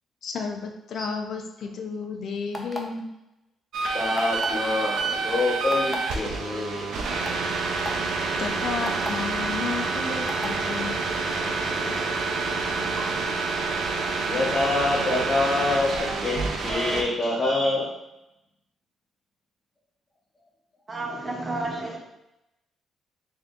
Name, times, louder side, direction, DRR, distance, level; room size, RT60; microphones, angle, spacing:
voice 1, 0.2-3.1 8.4-11.0 11.3-11.4 11.6-11.7, left 5 dB, 65° left, 3 dB, 0.5 m, -32 dB
sound 1, 2.5-3.0 4.1-4.6 5.7-6.0 6.7-6.8 7.2-7.4 7.8-7.9 8.8-9.1 10.3-10.5, equal, 5° left, 0.6 m, -33 dB
sound 2, 3.7-17.0, right 4 dB, 75° right, 0.5 m, -28 dB
voice 2, 3.9-6.9 11.8-11.9 12.5-12.6 14.0-17.9, left 2 dB, 30° left, -7 dB, 1.0 m, -26 dB
voice 3, 20.9-22.0, right 2 dB, 25° right, -1 dB, 0.9 m, -31 dB
3.3 x 2.7 x 3.7 m, 0.88 s
cardioid pair, 90°, 0 cm